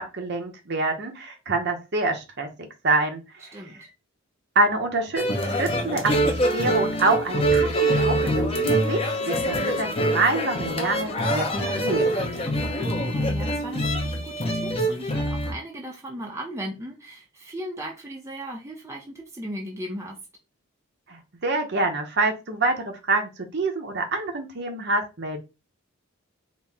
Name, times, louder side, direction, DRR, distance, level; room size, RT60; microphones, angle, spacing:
voice 1, 0.0-2.5 2.8-3.5 4.6-12.2 21.1-25.4, right 2 dB, 50° right, 4 dB, 0.8 m, -26 dB
sound 1, 5.2-15.5, right 1 dB, 25° left, 0.6 m, -24 dB
voice 2, 12.8-20.2, right 1 dB, 15° right, -1 dB, 0.6 m, -37 dB
4.1 x 2.0 x 3.5 m, 0.27 s
head